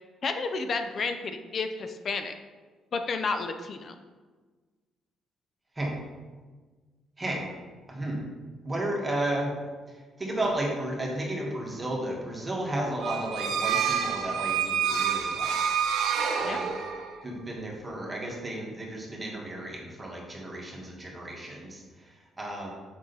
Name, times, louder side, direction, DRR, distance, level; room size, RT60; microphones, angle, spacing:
voice 1, 0.2-2.3 2.9-3.9 16.4-16.6, left 4 dB, 50° left, 7 dB, 0.6 m, -31 dB
voice 2, 7.2-7.5 7.9-8.2 8.6-9.5 9.9-15.6 16.4-16.8 17.2-22.7, right 1 dB, 20° right, -1 dB, 1.6 m, -33 dB
sound 1, 13.0-17.2, right 7 dB, 85° right, 0.7 m, -28 dB
6.2 x 5.6 x 4.0 m, 1.4 s
cardioid pair, 90°, 0 cm